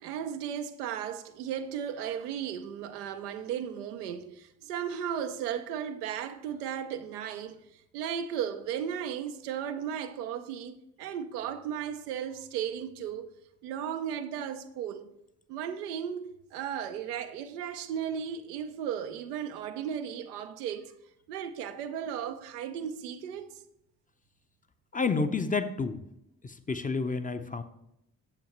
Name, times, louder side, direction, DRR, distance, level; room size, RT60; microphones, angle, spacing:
voice 1, 0.0-7.6 7.9-13.3 13.6-15.1 15.5-16.2 16.5-20.9 21.3-23.5, right 8 dB, 90° right, 0.5 m, -35 dB
voice 2, 24.9-26.0 26.4-27.6, left 4 dB, 20° left, 0.6 m, -30 dB
9.0 x 7.0 x 3.0 m
hypercardioid pair, 40°, 45 cm